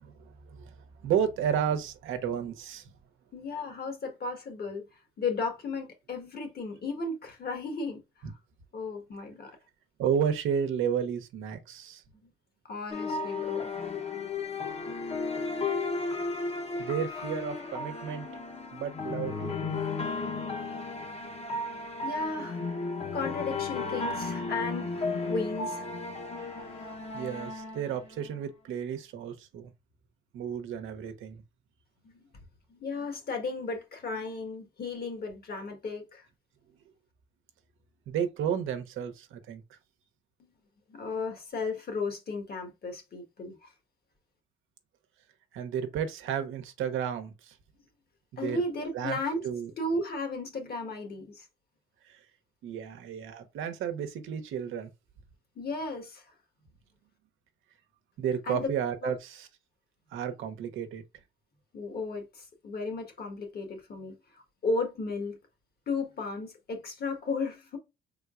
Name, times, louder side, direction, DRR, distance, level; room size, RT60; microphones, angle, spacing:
voice 1, 0.0-2.9 8.2-8.3 10.0-12.0 16.8-18.3 18.7-19.8 27.1-29.7 30.3-31.4 38.1-39.6 45.5-47.6 48.3-48.6 48.9-49.2 49.4-49.7 52.1-52.2 52.6-54.9 58.2-59.5 60.1-61.0, right 8 dB, 85° right, 0.9 m, -32 dB
voice 2, 3.3-8.3 8.7-9.5 12.2-12.3 12.6-13.7 22.0-22.6 23.1-25.9 32.7-36.2 40.4-40.5 40.9-43.7 48.4-49.5 49.8-51.5 52.8-53.0 55.5-56.3 58.5-58.7 59.0-59.1 61.7-65.4 65.9-67.8, left 3 dB, 50° left, 1.5 m, -35 dB
sound 1, 12.9-28.4, left 3 dB, 30° left, 0.9 m, -34 dB
4.5 x 3.7 x 2.4 m
cardioid pair, 90°, 20 cm